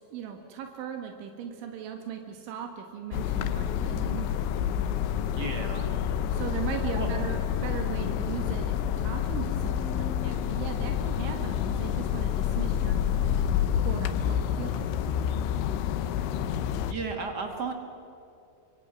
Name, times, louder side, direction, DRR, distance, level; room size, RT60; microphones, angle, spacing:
voice 1, 0.0-4.3 6.3-13.0 13.8-14.9, right 8 dB, 85° right, 4 dB, 3.9 m, -38 dB
sound 1, 3.1-16.9, left 9 dB, 85° left, 3.3 m, -28 dB
voice 2, 5.3-5.9 7.0-7.1 16.9-17.7, right 4 dB, 65° right, 4 dB, 1.0 m, -33 dB
28.5 x 24.5 x 6.3 m, 2.7 s
omnidirectional pair, 5.3 m